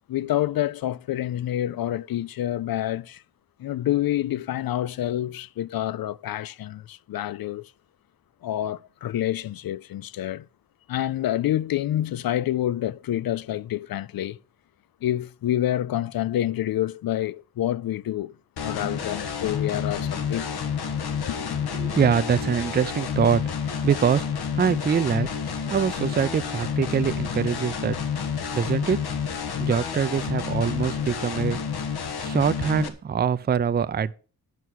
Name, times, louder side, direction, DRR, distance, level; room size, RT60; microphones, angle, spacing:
voice 1, 0.1-3.2 3.6-7.7 8.4-10.5 10.9-14.4 15.0-18.3 18.6-20.5 21.3-21.6, left 12 dB, 65° left, 0.5 m, -27 dB
sound 1, 18.6-32.9, left 7 dB, 85° left, 1.4 m, -29 dB
voice 2, 21.7-23.4 23.8-24.2 24.5-25.3 25.7-28.0 28.5-29.0 29.6-31.6 32.2-34.1, right 7 dB, 25° right, 0.4 m, -24 dB
11.0 x 5.7 x 6.2 m
wide cardioid pair, 135°, 38 cm